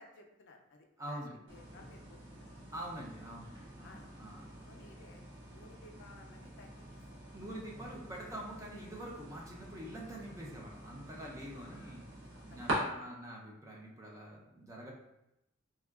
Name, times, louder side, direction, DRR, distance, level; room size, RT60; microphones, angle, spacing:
voice 1, 0.0-1.2 1.5-2.5 3.8-4.1 4.7-7.0 11.6-12.0 12.3-12.7, left 2 dB, 65° left, 2 dB, 0.4 m, -58 dB
voice 2, 1.0-1.4 2.7-4.5 7.3-12.0 12.5-14.9, right 1 dB, 15° right, -2 dB, 0.5 m, -45 dB
sound 1, 1.5-12.7, right 2 dB, 70° right, 0.9 m, -46 dB
3.5 x 2.2 x 2.3 m, 0.88 s
head